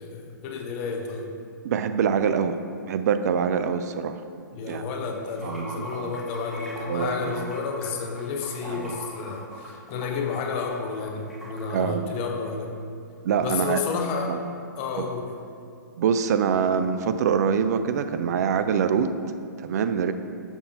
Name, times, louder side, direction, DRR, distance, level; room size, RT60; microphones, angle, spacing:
voice 1, 0.0-1.4 4.5-12.7 13.4-14.4 14.8-15.3, left 4 dB, 40° left, 3 dB, 0.8 m, -31 dB
voice 2, 1.6-2.6 2.8-4.2 4.7-4.8 5.4-6.1 6.9-7.5 8.7-8.9 11.7-12.1 13.2-13.8 14.3-14.4 15.0-15.1 16.0-19.2 19.6-20.1, right 7 dB, 55° right, 10 dB, 0.4 m, -25 dB
Water / Sink (filling or washing), 5.2-11.6, equal, ahead, 1.5 m, -41 dB
6.9 x 6.6 x 2.8 m, 2.4 s
hypercardioid pair, 120°, 11 cm